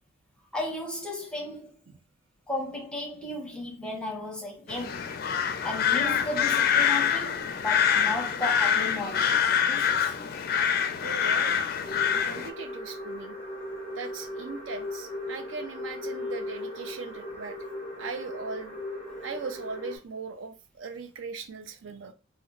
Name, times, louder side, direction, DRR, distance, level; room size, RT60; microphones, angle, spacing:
voice 1, 0.5-1.7 2.5-5.2 5.6-10.1, left 2 dB, 5° left, 0.7 m, -35 dB
sound 1, 4.7-12.5, left 8 dB, 45° left, 0.4 m, -25 dB
voice 2, 10.9-11.6 12.2-13.4 14.0-17.6 18.0-18.8 19.2-22.1, right 4 dB, 70° right, 0.4 m, -39 dB
sound 2, 11.8-20.0, left 1 dB, 30° right, 1.5 m, -38 dB
3.0 x 2.1 x 3.7 m
head